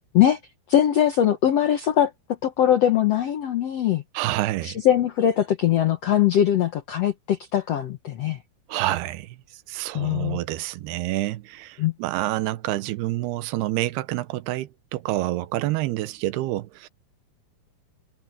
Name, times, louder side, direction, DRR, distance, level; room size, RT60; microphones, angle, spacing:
voice 1, 0.7-2.1 2.4-4.0 4.6-8.4 9.9-10.4 11.8-11.9, left 10 dB, 75° left, 1.4 m, -21 dB
voice 2, 4.1-4.8 8.7-9.4 9.7-16.9, right 16 dB, 85° right, 2.9 m, -28 dB
omnidirectional pair, 4.5 m